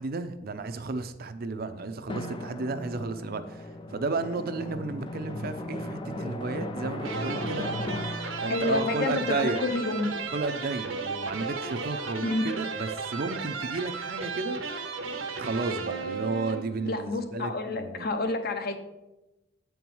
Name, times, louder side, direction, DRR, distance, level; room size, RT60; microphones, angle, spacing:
voice 1, 0.0-7.7 8.4-9.6 10.3-14.6 15.4-18.1, right 3 dB, 50° right, 0.6 m, -33 dB
Drum, 2.1-10.4, left 1 dB, 25° left, 0.5 m, -37 dB
sound 1, 7.0-17.0, right 4 dB, 90° right, 1.2 m, -35 dB
voice 2, 8.5-10.2 12.2-12.5 16.9-18.8, left 2 dB, 50° left, 0.9 m, -29 dB
8.5 x 4.6 x 5.4 m
head